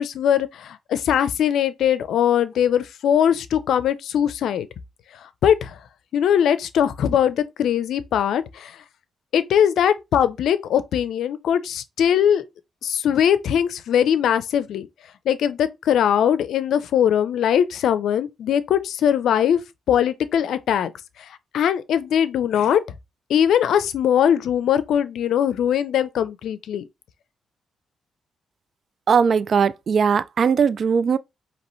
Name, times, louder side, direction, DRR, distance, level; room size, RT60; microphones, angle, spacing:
voice 1, 0.0-4.7 5.4-5.8 6.1-8.8 9.3-12.4 12.8-14.9 15.3-19.6 19.9-20.9 21.2-21.3 21.5-22.8 23.3-26.8, left 9 dB, 80° left, 0.5 m, -21 dB
voice 2, 29.1-31.2, right 6 dB, 55° right, 0.3 m, -19 dB
5.2 x 2.9 x 3.1 m
cardioid pair, 85°, 0 cm